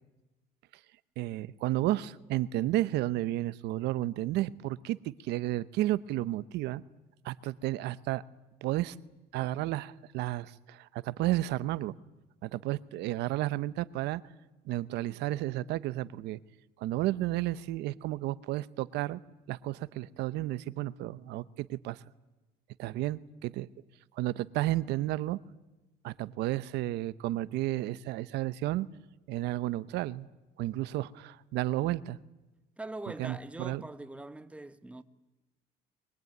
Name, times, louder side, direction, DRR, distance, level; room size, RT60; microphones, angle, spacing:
voice 1, 1.2-6.8 7.2-8.2 8.6-9.0 9.3-11.9 12.4-14.2 14.7-16.4 16.8-19.2 19.5-22.0 22.8-23.7 24.1-25.4 26.0-28.9 29.3-30.3 30.6-32.2 33.2-33.8, right 15 dB, 85° right, 0.8 m, -32 dB
voice 2, 32.8-35.0, right 2 dB, 5° right, 1.3 m, -42 dB
23.5 x 22.0 x 9.4 m
cardioid pair, 110°, 17 cm